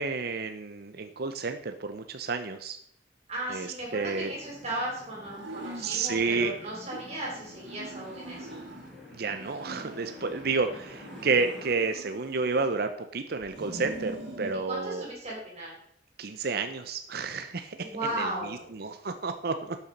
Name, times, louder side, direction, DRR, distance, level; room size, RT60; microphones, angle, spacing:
voice 1, 0.0-2.8 3.5-4.3 5.8-6.5 9.1-15.0 16.2-17.8 18.2-18.3 18.7-19.8, right 4 dB, 55° right, 8 dB, 0.7 m, -30 dB
voice 2, 3.3-8.6 14.6-15.7 17.8-18.7, right 1 dB, 35° right, -3 dB, 4.7 m, -36 dB
sound 1, 3.8-11.7, left 1 dB, 5° left, 3.6 m, -49 dB
sound 2, 5.2-6.5 6.9-9.0 9.3-10.6 11.0-12.9 13.4-14.6, right 1 dB, 90° right, 2.7 m, -43 dB
12.0 x 7.1 x 5.2 m, 0.71 s
head